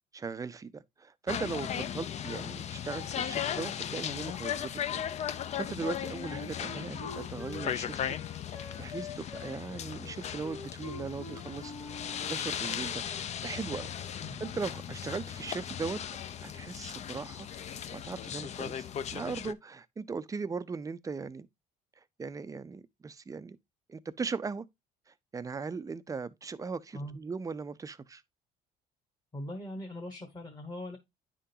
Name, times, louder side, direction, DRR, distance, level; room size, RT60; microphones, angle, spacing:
voice 1, 0.1-5.0 5.3-8.2 8.8-11.7 12.3-13.0 13.4-16.0 16.4-21.5 22.2-23.6 23.9-24.6 25.3-28.2, right 4 dB, 20° right, 0.4 m, -38 dB
sound 1, 1.3-19.5, left 9 dB, 40° left, 0.4 m, -37 dB
Wind instrument woodwind instrument, 6.2-12.5, left 4 dB, 80° left, 2.2 m, -46 dB
voice 2, 29.3-31.0, left 1 dB, 20° left, 1.2 m, -40 dB
9.8 x 3.7 x 2.7 m
cardioid pair, 110°, 17 cm